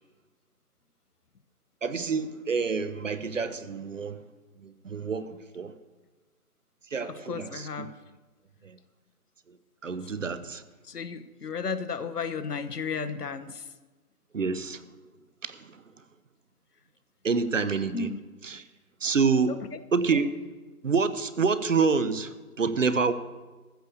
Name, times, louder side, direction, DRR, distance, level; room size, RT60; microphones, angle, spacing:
voice 1, 1.8-4.2 4.6-5.7 6.9-7.9 8.6-8.8 9.8-10.6 14.3-14.8 15.4-15.8 17.2-18.1 18.4-18.6 19.0-19.5 19.9-20.4 20.8-23.1, right 5 dB, 55° right, 14 dB, 0.8 m, -27 dB
voice 2, 7.1-7.9 10.8-13.6 17.9-18.2 19.5-19.8, left 5 dB, 85° left, 12 dB, 1.1 m, -34 dB
14.0 x 6.6 x 6.8 m, 1.3 s
hypercardioid pair, 175°, 46 cm